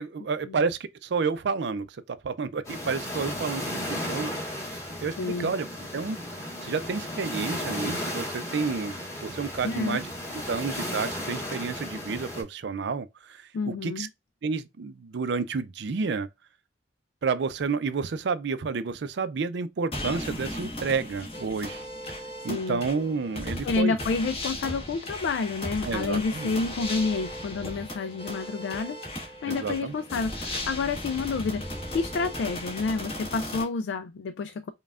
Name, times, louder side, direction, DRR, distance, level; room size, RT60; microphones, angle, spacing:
voice 1, 0.0-5.7 5.9-8.9 9.2-14.1 14.4-16.3 17.2-21.8 22.4-24.0 25.8-26.6 29.5-29.9, right 4 dB, 65° right, 0.4 m, -30 dB
sound 1, 2.6-12.4, left 1 dB, 15° left, 1.5 m, -35 dB
voice 2, 5.2-5.5 9.6-10.0 13.5-14.1 22.5-22.8 23.6-34.7, left 4 dB, 75° left, 0.3 m, -29 dB
sound 2, 19.9-33.6, left 1 dB, 35° left, 1.4 m, -36 dB
5.3 x 2.3 x 2.4 m
head